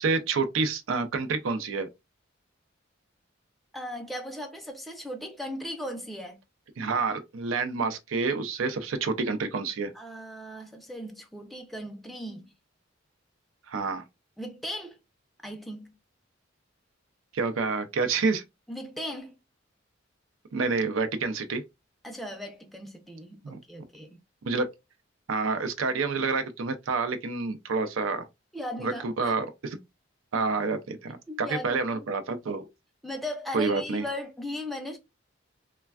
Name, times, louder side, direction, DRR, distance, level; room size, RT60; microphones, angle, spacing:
voice 1, 0.0-1.9 6.8-9.9 13.7-14.0 17.3-18.4 20.5-21.6 23.4-23.6 24.5-24.7 25.3-28.3 28.8-29.8 30.3-32.7 33.5-34.0, right 4 dB, 90° right, 0.5 m, -28 dB
voice 2, 3.7-6.4 9.9-12.5 14.4-15.0 15.4-15.9 18.7-19.4 22.0-24.2 28.5-29.4 31.3-32.1 33.0-35.0, left 1 dB, ahead, 0.4 m, -37 dB
3.2 x 2.2 x 2.2 m
head